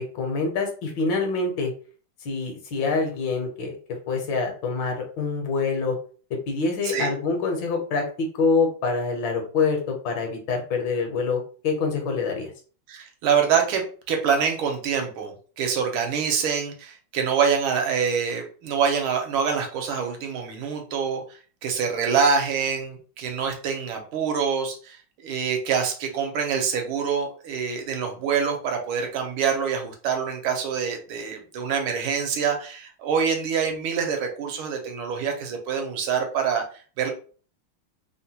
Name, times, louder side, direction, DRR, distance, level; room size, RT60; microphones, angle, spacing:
voice 1, 0.0-1.7 2.2-3.8 4.1-6.0 6.5-12.5, left 4 dB, 70° left, 3 dB, 1.4 m, -26 dB
voice 2, 12.9-37.1, right 6 dB, 80° right, 3 dB, 1.5 m, -25 dB
3.6 x 2.2 x 2.7 m, 0.40 s
omnidirectional pair, 2.3 m